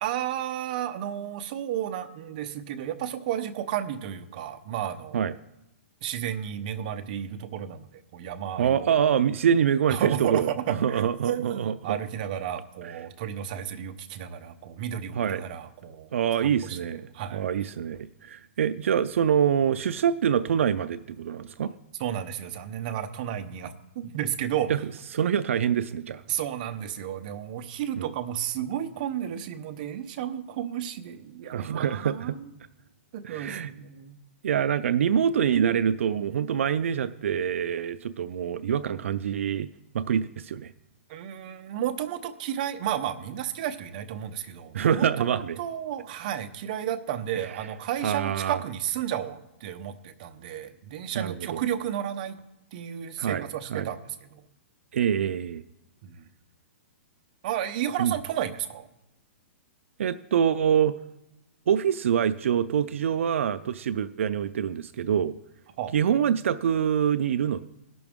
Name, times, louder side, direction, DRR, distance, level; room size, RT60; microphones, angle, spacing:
voice 1, 0.0-5.2 6.0-7.9 8.1-9.0 9.9-16.1 16.4-17.5 22.0-24.7 26.3-32.5 33.1-34.2 41.1-52.4 52.7-54.4 56.0-56.2 57.4-58.9 65.8-65.9, right 10 dB, 40° right, 8 dB, 0.7 m, -32 dB
voice 2, 8.6-12.0 15.1-15.4 16.1-17.0 17.3-21.7 24.7-24.8 25.1-26.2 28.0-28.1 31.5-32.3 33.2-33.7 34.4-39.7 39.9-40.7 44.7-45.6 48.0-48.6 51.1-51.6 53.2-53.9 54.9-55.6 58.0-58.1 60.0-60.9 61.7-65.3 65.9-67.7, right 8 dB, 75° right, 11 dB, 0.4 m, -25 dB
17.5 x 6.0 x 3.6 m, 0.93 s
hypercardioid pair, 165°, 7 cm